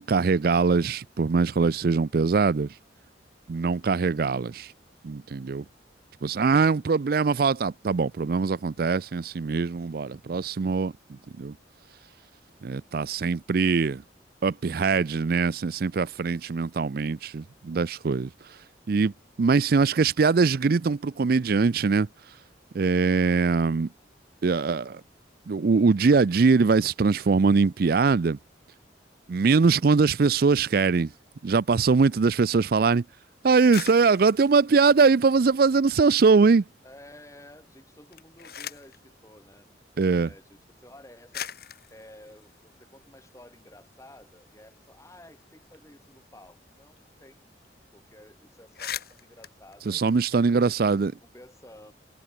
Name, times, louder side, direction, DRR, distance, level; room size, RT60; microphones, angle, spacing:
voice 1, 0.0-2.7 3.5-4.7 5.0-5.6 6.2-10.9 11.4-11.5 12.6-14.0 14.4-18.3 18.9-19.1 19.4-22.1 22.7-23.9 24.4-25.0 25.5-28.4 29.3-31.1 31.4-33.0 33.4-36.6 40.0-40.3 49.9-51.1, right 4 dB, 55° right, 0.4 m, -22 dB
sound 1, 33.5-36.1 36.5-37.2 37.9-39.0 40.1-40.2 40.9-41.0 41.3-43.6 44.0-44.1 44.4-47.0 47.2-47.4 47.6-47.9 48.3-48.4 48.6-50.8, left 9 dB, 55° left, 5.6 m, -42 dB
voice 2, 36.8-39.7 40.0-47.6 47.9-50.0 50.6-51.9, left 1 dB, 15° left, 5.8 m, -52 dB
head